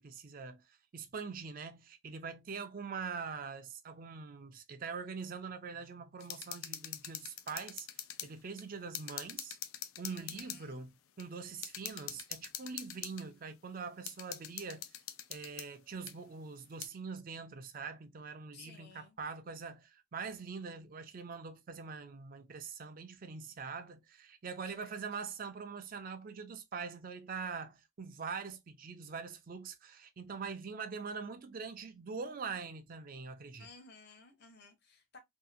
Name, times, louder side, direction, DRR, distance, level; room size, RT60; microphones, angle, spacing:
voice 1, 0.0-7.9 8.2-9.6 10.0-14.9 15.3-33.7, right 5 dB, 40° right, 0.4 m, -43 dB
sound 1, 6.2-8.3 8.6-8.7 8.9-10.6 11.2-11.3 11.6-13.2 14.1-15.7 16.1-16.2 16.8-16.9, left 11 dB, 80° left, 0.4 m, -43 dB
voice 2, 10.1-10.9 18.5-19.2 24.6-24.9 33.6-35.2, left 4 dB, 50° left, 0.8 m, -57 dB
2.7 x 2.4 x 2.4 m
head